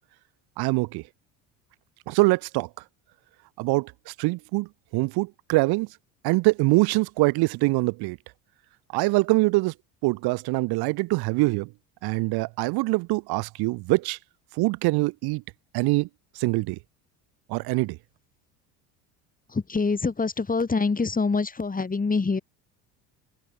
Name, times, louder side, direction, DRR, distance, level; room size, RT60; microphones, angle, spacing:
voice 1, 0.6-1.0 2.1-2.7 3.6-5.9 6.2-8.2 8.9-9.7 10.0-11.7 12.0-14.2 14.5-15.4 15.7-16.1 16.3-16.8 17.5-18.0, right 24 dB, 65° right, 1.0 m, -24 dB
voice 2, 19.5-22.4, left 4 dB, 20° left, 4.0 m, -25 dB
open air
supercardioid pair, 85°, 40 cm